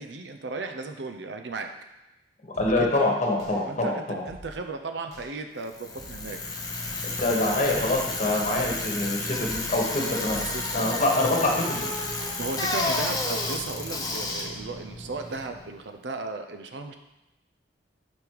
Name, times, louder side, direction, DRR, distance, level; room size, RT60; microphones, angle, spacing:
voice 1, 0.0-1.7 2.8-2.9 3.6-6.4 10.0-10.2 10.5-11.0 12.4-16.9, right 3 dB, 75° right, 6 dB, 0.6 m, -35 dB
sound 1, 2.5-3.0 3.4-3.8 4.2-4.7 5.1-5.4 6.0-6.4 6.8-7.2 7.7-8.1 8.5-9.0 9.4-9.8 10.2-10.7, equal, 40° right, 1.4 m, -46 dB
voice 2, 2.6-4.2 7.2-10.4 10.7-11.9, left 2 dB, 45° left, -1 dB, 1.3 m, -25 dB
Bicycle, 5.7-15.7, left 2 dB, 20° left, 0.9 m, -31 dB
5.3 x 5.1 x 4.7 m, 0.96 s
head